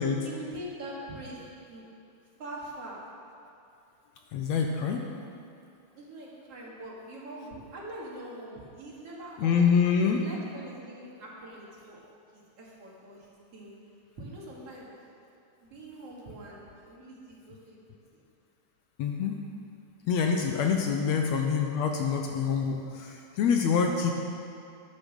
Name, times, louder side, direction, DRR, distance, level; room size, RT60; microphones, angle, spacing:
voice 1, 0.2-1.4 1.7-1.8 2.4-3.0 6.0-9.8 10.1-12.1 12.3-13.8 14.2-14.9 15.6-17.8 18.1-18.2 20.8-21.1, right 1 dB, 55° right, -4 dB, 2.9 m, -43 dB
voice 2, 4.3-5.0 9.4-10.2 19.0-19.4 20.1-24.1, left 6 dB, 70° left, 3 dB, 1.8 m, -26 dB
11.0 x 10.5 x 6.4 m, 2.5 s
omnidirectional pair, 3.5 m